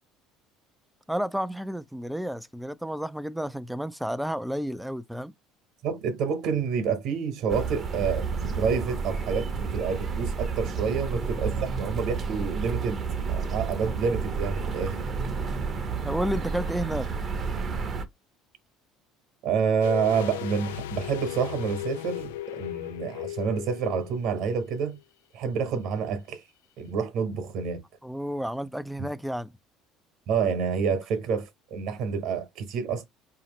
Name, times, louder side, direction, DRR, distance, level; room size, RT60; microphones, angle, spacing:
voice 1, 1.1-5.3 11.1-11.2 11.5-11.9 16.0-17.1 28.0-29.5, equal, 5° right, 0.5 m, -31 dB
voice 2, 5.8-8.3 8.5-13.0 13.3-15.0 19.4-25.0 25.3-26.4 26.8-27.8 30.3-33.0, right 6 dB, 65° right, 1.2 m, -28 dB
sound 1, 7.5-18.0, right 5 dB, 40° right, 0.8 m, -31 dB
sound 2, 19.8-24.7 24.9-25.0, left 14 dB, 80° left, 0.3 m, -36 dB
4.8 x 2.8 x 3.0 m
hypercardioid pair, 65°, 0 cm